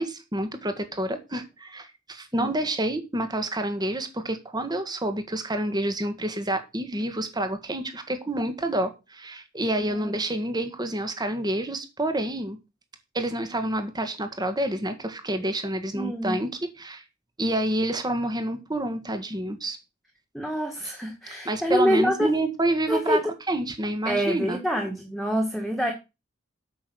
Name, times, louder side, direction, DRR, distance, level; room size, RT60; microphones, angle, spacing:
voice 1, 0.0-12.6 13.1-17.0 17.4-19.8 21.4-23.2 23.5-24.6, right 1 dB, 20° right, 1.7 m, -28 dB
voice 2, 9.8-10.2 15.9-16.4 20.3-22.3 22.9-23.2 24.1-25.9, equal, ahead, 2.0 m, -26 dB
8.7 x 7.1 x 6.3 m
head